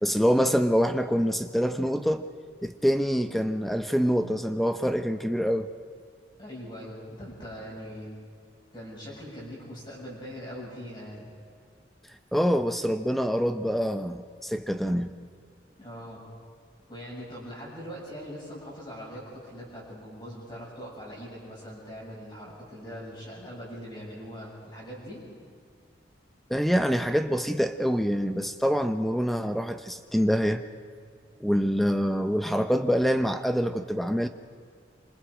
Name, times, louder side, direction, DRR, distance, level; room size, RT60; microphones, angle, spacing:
voice 1, 0.0-2.3 2.6-5.7 12.3-15.1 26.5-30.6 31.4-34.3, equal, ahead, 8 dB, 0.6 m, -25 dB
voice 2, 6.4-8.1 8.7-11.3 15.8-16.2 16.9-25.2, equal, 25° left, -4 dB, 7.5 m, -41 dB
26.5 x 26.0 x 5.0 m, 2.1 s
head